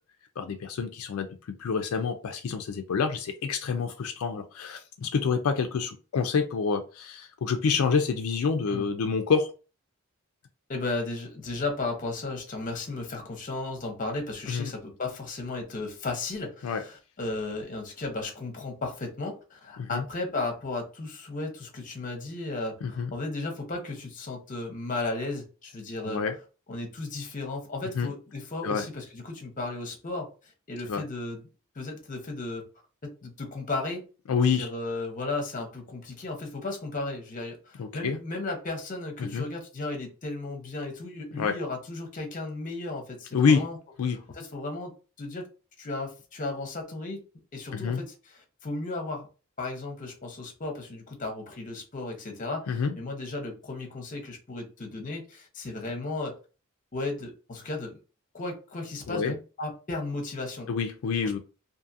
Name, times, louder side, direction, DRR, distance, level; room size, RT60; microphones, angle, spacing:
voice 1, 0.4-1.3 1.6-9.5 14.5-14.7 16.6-16.8 19.8-20.0 22.8-23.1 26.0-26.4 27.9-28.1 28.6-28.8 30.9-31.0 34.3-34.7 37.8-38.2 39.2-39.5 41.4-41.6 43.3-43.6 44.0-44.2 47.7-48.0 52.7-52.9 59.1-59.4 60.7-61.4, left 5 dB, 85° left, 6 dB, 0.4 m, -27 dB
voice 2, 10.7-26.2 26.7-31.4 31.8-32.6 33.2-34.1 34.5-43.8 44.3-44.9 45.2-45.5 45.8-47.2 47.5-48.1 48.6-49.3 49.6-56.4 56.9-58.0 58.3-59.3 59.6-60.7 61.2-61.4, left 2 dB, 40° left, 3 dB, 0.8 m, -35 dB
2.6 x 2.5 x 2.6 m, 0.34 s
head